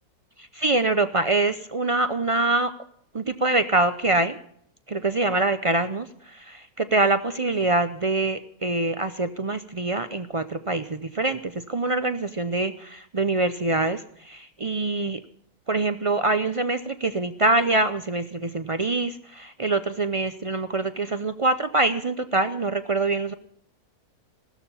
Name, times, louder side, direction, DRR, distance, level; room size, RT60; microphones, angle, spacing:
voice 1, 0.4-2.7 3.1-4.4 4.9-15.2 15.7-23.3, right 2 dB, 60° right, 10 dB, 0.3 m, -24 dB
17.0 x 13.0 x 5.5 m, 0.66 s
omnidirectional pair, 1.6 m